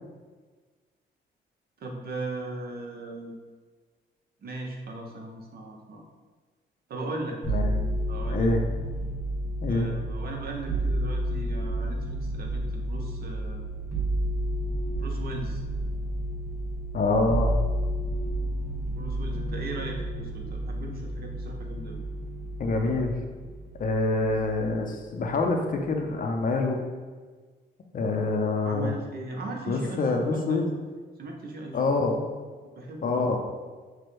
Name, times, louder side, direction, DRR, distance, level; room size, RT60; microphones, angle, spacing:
voice 1, 1.8-3.4 4.4-6.0 6.9-7.4 8.1-8.5 9.7-13.7 15.0-15.6 18.9-22.0 28.6-30.7 31.2-32.0 32.8-33.4, right 2 dB, 50° right, 1 dB, 0.8 m, -38 dB
sound 1, 7.4-24.9 25.2-26.0, right 1 dB, 15° right, 1.3 m, -31 dB
voice 2, 7.5-7.8 8.3-8.6 9.6-9.9 16.9-17.5 22.6-23.1 23.8-26.8 27.9-28.9 29.7-30.6 31.7-32.2 33.0-33.4, left 3 dB, 45° left, 3 dB, 0.6 m, -26 dB
6.0 x 2.2 x 3.2 m, 1.4 s
cardioid pair, 90°, 20 cm